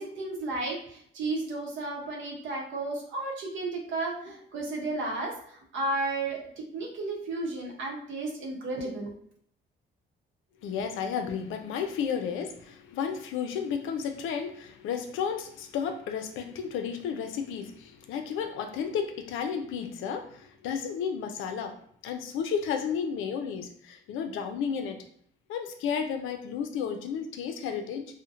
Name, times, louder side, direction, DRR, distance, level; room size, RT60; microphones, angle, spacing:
voice 1, 0.0-9.2, right 2 dB, 75° right, 1 dB, 0.8 m, -33 dB
voice 2, 10.6-25.0 25.5-28.1, left 7 dB, 85° left, 5 dB, 0.4 m, -32 dB
2.7 x 2.1 x 2.4 m, 0.63 s
cardioid pair, 90°, 20 cm